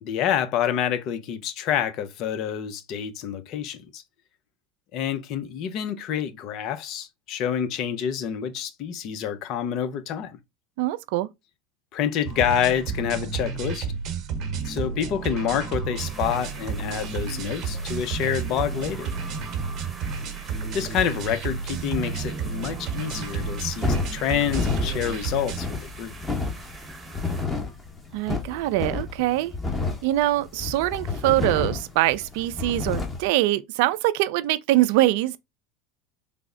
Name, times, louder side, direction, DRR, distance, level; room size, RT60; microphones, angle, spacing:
voice 1, 0.0-4.0 4.9-10.4 11.9-13.9 14.6-19.1 20.7-26.1, left 9 dB, 50° left, 0.6 m, -27 dB
voice 2, 10.8-11.3 28.1-29.5 30.0-35.4, right 16 dB, 70° right, 0.3 m, -23 dB
sound 1, 12.2-25.6, right 5 dB, 50° right, 0.9 m, -31 dB
sound 2, 16.0-27.5, right 2 dB, 15° right, 1.0 m, -44 dB
sound 3, 23.4-33.3, left 4 dB, 15° left, 0.9 m, -30 dB
3.4 x 2.0 x 3.7 m
supercardioid pair, 105°, 0 cm